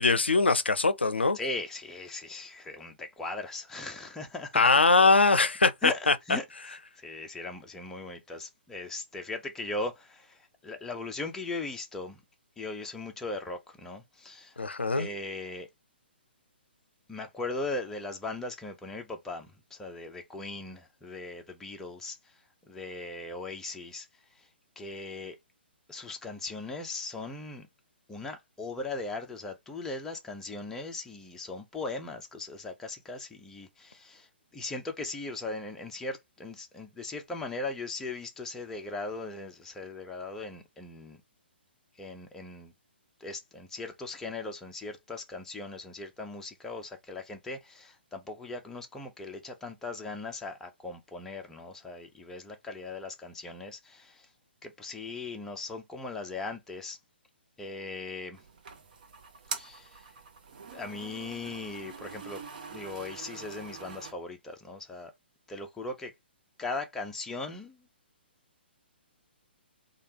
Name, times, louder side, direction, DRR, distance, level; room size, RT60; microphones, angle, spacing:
voice 1, 0.0-1.4 4.5-6.1 14.6-15.1, left 3 dB, 75° left, 0.5 m, -22 dB
voice 2, 1.3-4.6 5.8-12.2 12.6-14.6 15.0-15.7 17.1-22.3 22.6-24.1 24.4-24.5 24.8-25.4 25.9-27.7 28.1-41.2 42.0-42.7 43.2-54.3 54.6-57.0 57.6-58.4 59.5-60.1 60.7-62.4 62.7-65.1 65.5-66.1 66.6-67.9, left 3 dB, 5° left, 0.5 m, -39 dB
sound 1, 58.3-64.1, right 5 dB, 50° right, 0.7 m, -44 dB
3.2 x 2.3 x 2.9 m
figure-of-eight pair, 125°, 6 cm